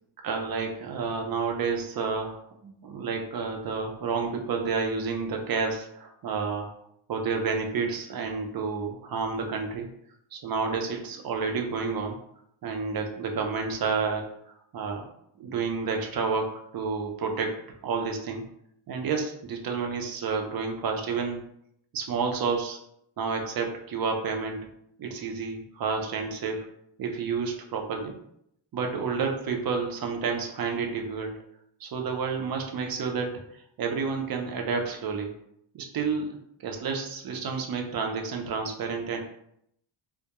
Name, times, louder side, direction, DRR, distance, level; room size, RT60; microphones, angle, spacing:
voice 1, 0.2-6.7 7.1-9.9 10.3-12.2 12.6-14.3 14.7-15.1 15.4-17.6 17.8-18.4 18.9-21.4 21.9-22.8 23.2-24.7 25.0-26.6 27.0-28.1 28.7-31.4 31.8-33.3 33.8-35.4 35.7-36.3 36.6-39.2, right 5 dB, 50° right, 2 dB, 0.5 m, -30 dB
2.3 x 2.1 x 2.8 m, 0.74 s
cardioid pair, 95°, 48 cm